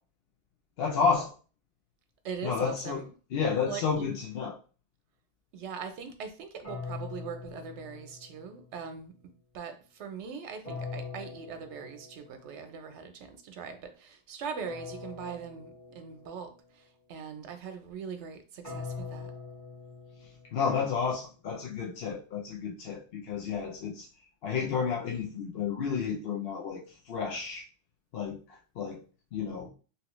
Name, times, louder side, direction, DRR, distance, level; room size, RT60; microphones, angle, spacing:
voice 1, 0.8-1.3 2.4-3.0 3.3-4.6 20.5-24.1 24.4-27.6 28.1-29.0 29.3-29.7, left 6 dB, 65° left, 0.8 m, -31 dB
voice 2, 2.2-3.1 3.7-4.2 5.5-19.3, right 6 dB, 80° right, 0.9 m, -41 dB
sound 1, 6.6-8.7 10.6-12.5 14.6-16.5 18.6-20.8, left 4 dB, 30° left, 1.5 m, -42 dB
2.9 x 2.7 x 3.0 m
omnidirectional pair, 1.2 m